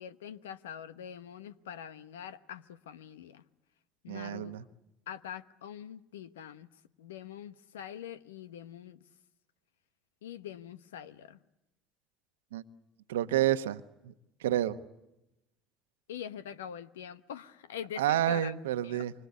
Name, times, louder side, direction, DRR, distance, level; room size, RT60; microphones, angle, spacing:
voice 1, 0.0-3.4 4.0-4.6 5.1-6.7 7.0-9.0 10.2-11.4 16.1-18.5 18.8-19.1, left 9 dB, 85° left, 1.0 m, -44 dB
voice 2, 4.1-4.6 12.5-12.6 13.1-13.8 14.4-14.8 18.0-19.1, right 12 dB, 85° right, 1.1 m, -29 dB
26.5 x 25.0 x 8.4 m
hypercardioid pair, 70°, 0 cm